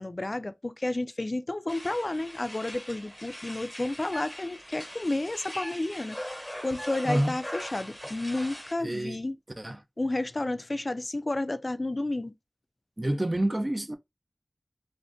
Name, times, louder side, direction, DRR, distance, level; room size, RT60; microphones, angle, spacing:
voice 1, 0.0-9.4 10.0-12.3, left 2 dB, 55° left, 0.3 m, -31 dB
sound 1, 1.7-8.7, equal, 10° left, 1.0 m, -41 dB
voice 2, 8.8-9.2 9.6-9.8 13.0-14.0, right 1 dB, 40° right, 0.5 m, -28 dB
3.4 x 2.6 x 2.6 m
wide cardioid pair, 45°, 0 cm